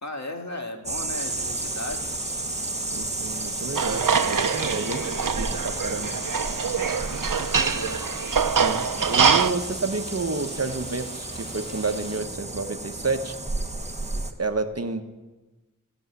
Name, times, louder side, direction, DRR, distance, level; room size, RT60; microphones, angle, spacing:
voice 1, 0.0-2.1 4.8-5.2 7.3-8.0, left 2 dB, 55° left, 3 dB, 1.9 m, -36 dB
sound 1, 0.8-14.3, right 2 dB, 20° right, 1.2 m, -32 dB
Rain, 1.1-12.2, equal, 15° left, 4.9 m, -45 dB
voice 2, 2.9-5.0 5.4-6.1 8.6-13.3 14.4-15.0, right 3 dB, 45° right, 7 dB, 1.1 m, -30 dB
sound 2, 3.7-9.5, right 6 dB, 70° right, 0.7 m, -24 dB
16.5 x 7.1 x 9.5 m, 1.2 s
wide cardioid pair, 45°, 33 cm